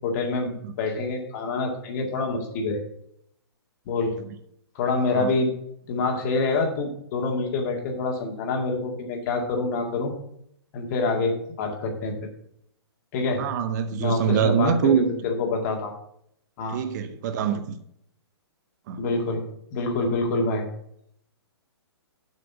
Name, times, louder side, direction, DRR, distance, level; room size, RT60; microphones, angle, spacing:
voice 1, 0.0-2.8 3.9-4.1 4.8-5.5 5.9-10.1 10.7-12.1 13.1-13.4 14.0-15.9 16.6-16.8 19.0-19.4 19.7-20.7, left 3 dB, 40° left, 2.1 m, -26 dB
voice 2, 13.4-15.1 16.7-17.7 18.9-19.0, right 7 dB, 40° right, 0.8 m, -24 dB
7.7 x 5.1 x 7.1 m
hypercardioid pair, 130°, 14 cm